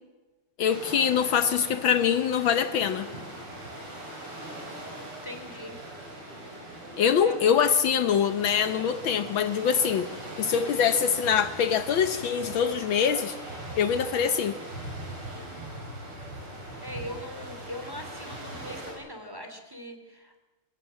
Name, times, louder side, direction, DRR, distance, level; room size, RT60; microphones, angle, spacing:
voice 1, 0.6-3.1 7.0-10.1 10.4-13.4 13.8-14.6, left 7 dB, 70° left, 11 dB, 1.6 m, -24 dB
sound 1, 0.7-18.9, right 1 dB, 90° right, 6.6 m, -40 dB
voice 2, 5.2-5.8 7.2-8.1 16.8-20.4, equal, 10° right, 5 dB, 2.7 m, -41 dB
sound 2, 8.6-12.8, right 1 dB, 70° right, 6.9 m, -51 dB
24.0 x 16.5 x 7.5 m, 1.2 s
omnidirectional pair, 2.4 m